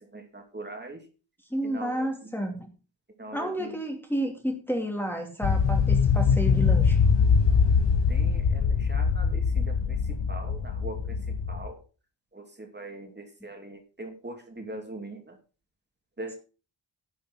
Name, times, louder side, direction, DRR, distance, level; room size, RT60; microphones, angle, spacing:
voice 1, 0.1-1.0 1.6-2.1 3.2-3.8 8.1-10.0 10.3-11.2 11.5-11.8 12.3-15.4 16.2-16.3, right 2 dB, 25° right, 3 dB, 2.8 m, -41 dB
voice 2, 1.5-2.7 3.3-7.0, right 1 dB, 5° left, 1 dB, 2.6 m, -31 dB
sound 1, 5.4-11.7, left 5 dB, 70° left, 1.2 m, -23 dB
11.0 x 7.1 x 6.4 m, 0.35 s
wide cardioid pair, 95°, 45 cm